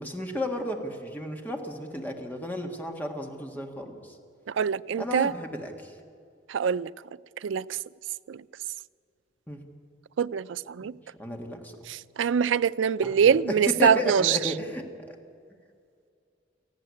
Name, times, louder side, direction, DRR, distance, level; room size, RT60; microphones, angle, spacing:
voice 1, 0.0-4.2 5.0-5.9 9.5-9.6 11.2-11.8 13.0-15.2, left 1 dB, 10° left, 1.7 m, -33 dB
voice 2, 4.5-5.3 6.5-6.9 7.4-7.7 8.3-8.4 10.2-11.0 11.9-14.5, right 7 dB, 90° right, 0.4 m, -24 dB
18.5 x 14.5 x 9.7 m
head